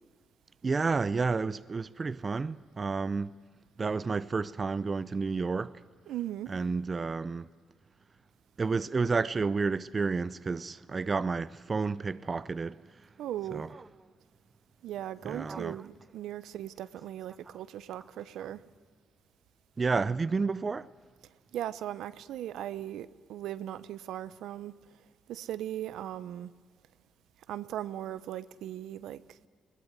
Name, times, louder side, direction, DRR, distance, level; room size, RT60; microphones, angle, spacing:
voice 1, 0.6-3.4 3.8-5.8 6.5-7.5 8.6-12.8 13.5-13.7 15.2-15.8 19.8-20.9, right 4 dB, 30° right, 0.6 m, -30 dB
voice 2, 6.1-6.5 13.2-13.6 14.8-18.6 21.5-24.7 25.3-26.5 27.5-29.4, right 12 dB, 80° right, 0.9 m, -38 dB
21.5 x 19.5 x 9.6 m
cardioid pair, 90°, 0 cm